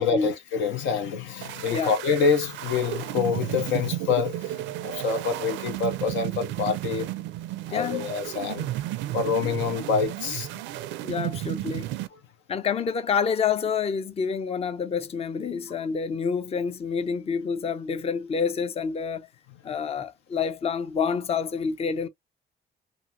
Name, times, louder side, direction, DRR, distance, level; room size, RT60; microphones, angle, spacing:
voice 1, 0.0-7.1 7.7-8.7 9.1-10.5 12.1-12.2, left 6 dB, 85° left, 0.8 m, -26 dB
sound 1, 1.4-12.1, right 14 dB, 80° right, 0.4 m, -33 dB
voice 2, 7.7-8.1 11.0-11.9 12.5-19.3 19.6-22.1, left 6 dB, 35° left, 0.5 m, -28 dB
2.7 x 2.5 x 2.6 m
supercardioid pair, 70°, 19 cm